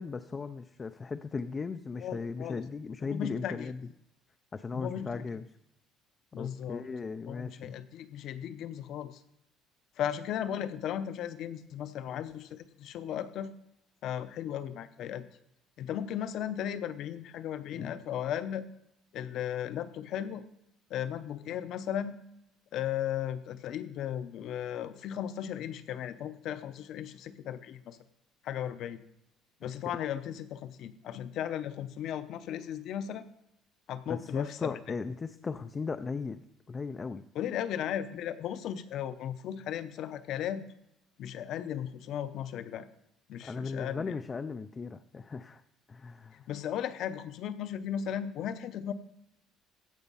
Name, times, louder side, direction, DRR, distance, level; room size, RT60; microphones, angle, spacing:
voice 1, 0.0-3.8 4.5-5.4 6.4-7.7 34.1-36.4 36.7-37.2 43.4-45.6 45.9-46.4, left 4 dB, 20° left, 10 dB, 0.3 m, -37 dB
voice 2, 2.0-2.6 3.0-3.7 4.7-5.4 6.3-6.9 7.3-9.2 10.0-13.5 14.0-15.2 15.8-18.6 19.1-20.4 20.9-22.2 22.7-28.0 28.4-29.0 29.6-33.3 33.9-34.8 37.3-40.6 41.2-42.9 43.3-44.2 46.3-48.9, left 10 dB, 50° left, 13 dB, 0.7 m, -36 dB
15.5 x 5.3 x 5.4 m, 0.81 s
cardioid pair, 170°, 0 cm